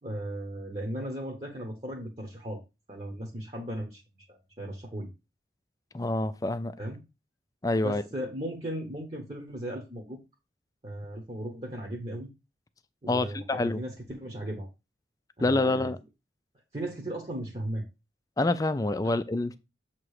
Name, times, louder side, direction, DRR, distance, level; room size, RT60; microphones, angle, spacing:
voice 1, 0.0-2.6 2.9-4.0 4.3-5.1 6.8-7.0 7.8-10.2 10.8-12.3 13.0-14.7 15.4-15.9 16.7-17.8 19.0-19.2, right 1 dB, 30° right, 1.0 m, -36 dB
voice 2, 5.9-6.7 7.6-8.0 13.1-13.8 15.4-16.0 18.4-19.6, left 2 dB, 20° left, 0.3 m, -27 dB
7.4 x 3.0 x 4.8 m
head